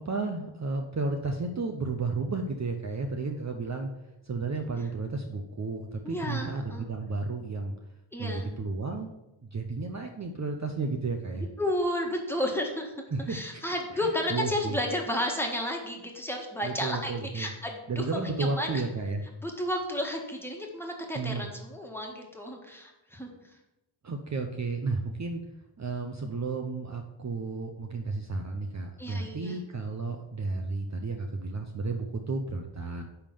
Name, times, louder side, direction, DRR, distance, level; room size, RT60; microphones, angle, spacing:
voice 1, 0.0-3.9 4.2-7.7 8.2-9.1 9.4-11.5 13.1-13.4 14.0-14.8 16.6-17.5 17.9-19.2 21.1-21.5 24.0-25.4 25.8-33.0, right 3 dB, 35° right, 4 dB, 0.8 m, -32 dB
voice 2, 6.0-6.8 8.1-8.5 11.4-12.9 13.3-18.1 18.4-18.8 19.4-23.3 29.0-29.6, left 1 dB, 5° left, 1 dB, 1.7 m, -32 dB
10.0 x 3.8 x 6.9 m, 0.94 s
wide cardioid pair, 100°, 48 cm